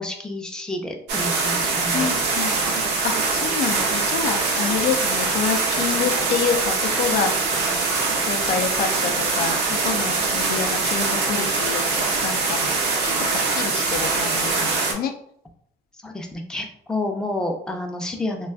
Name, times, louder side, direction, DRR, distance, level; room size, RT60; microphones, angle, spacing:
voice 1, 0.0-2.4 16.0-18.5, left 1 dB, 5° left, 2 dB, 0.5 m, -30 dB
sound 1, 1.1-14.9, right 4 dB, 85° right, 0.7 m, -23 dB
voice 2, 1.9-2.5 3.0-7.5 8.2-12.8 13.0-15.1, left 7 dB, 60° left, 6 dB, 0.4 m, -28 dB
2.4 x 2.3 x 3.4 m, 0.67 s
cardioid pair, 110°, 17 cm